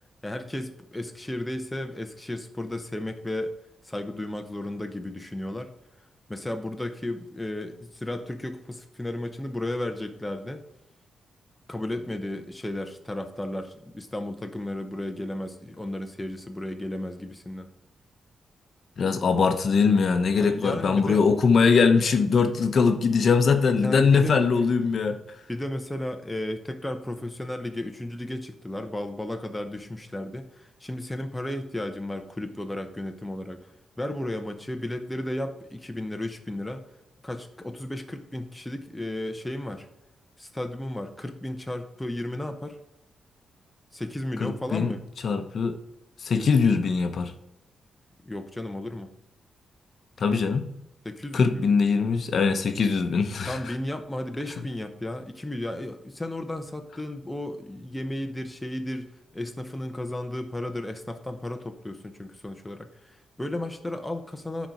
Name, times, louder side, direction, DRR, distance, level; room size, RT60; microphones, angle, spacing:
voice 1, 0.2-3.5 3.8-5.7 6.3-10.6 11.7-17.7 20.4-21.2 23.8-24.5 25.5-33.6 34.0-36.8 37.2-39.9 40.4-42.8 43.9-45.0 48.2-49.1 51.0-51.7 53.5-64.7, left 1 dB, 10° left, 5 dB, 0.7 m, -34 dB
voice 2, 19.0-25.2 44.4-44.9 45.2-45.8 46.2-47.3 50.2-50.6 51.3-53.7, left 5 dB, 50° left, 7 dB, 0.8 m, -22 dB
10.5 x 4.1 x 4.6 m, 0.87 s
wide cardioid pair, 145°, 0 cm